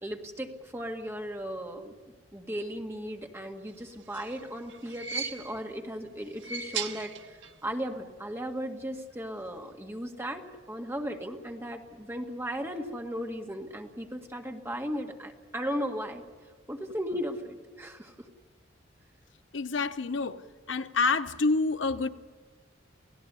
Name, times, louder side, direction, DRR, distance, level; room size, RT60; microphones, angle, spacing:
voice 1, 0.0-1.9 2.3-16.2 16.7-18.3, equal, 15° right, 3 dB, 1.9 m, -36 dB
sound 1, 3.9-5.8 6.3-7.7 7.9-8.0 9.1-9.2, right 5 dB, 80° right, 1.4 m, -38 dB
voice 2, 19.5-20.4 20.7-22.1, left 4 dB, 75° left, 11 dB, 0.9 m, -27 dB
29.0 x 17.0 x 6.9 m, 1.5 s
head